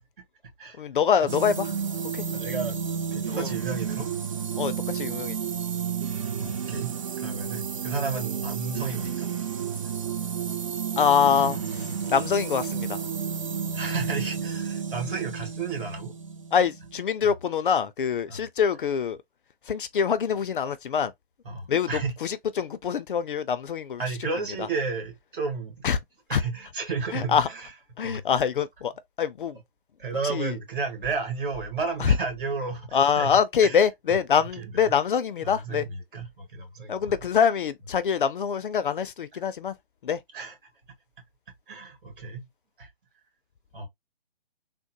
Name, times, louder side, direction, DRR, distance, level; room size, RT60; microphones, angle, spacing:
voice 1, 0.8-1.7 2.1-2.2 3.3-3.5 4.6-5.4 11.0-13.0 16.5-19.2 19.7-21.1 21.7-24.0 24.6-24.7 25.8-26.0 26.3-26.4 27.1-27.5 28.0-28.9 29.2-29.6 30.2-30.6 32.0-32.1 32.9-35.8 36.9-39.7 40.0-40.2, left 7 dB, 60° left, 0.5 m, -25 dB
sound 1, 1.3-17.0, right 7 dB, 35° right, 0.5 m, -31 dB
voice 2, 2.3-2.8 3.1-4.1 6.4-9.3 13.7-16.1 17.2-17.3 18.3-18.4 21.4-22.1 24.0-25.8 26.3-27.7 28.0-28.2 30.0-33.3 33.6-33.8 34.4-34.9 35.4-37.1 40.3-40.6 41.7-42.5 42.8-42.9 43.7-43.9, right 4 dB, 55° right, 1.9 m, -32 dB
3.6 x 2.1 x 2.9 m
hypercardioid pair, 155°, 31 cm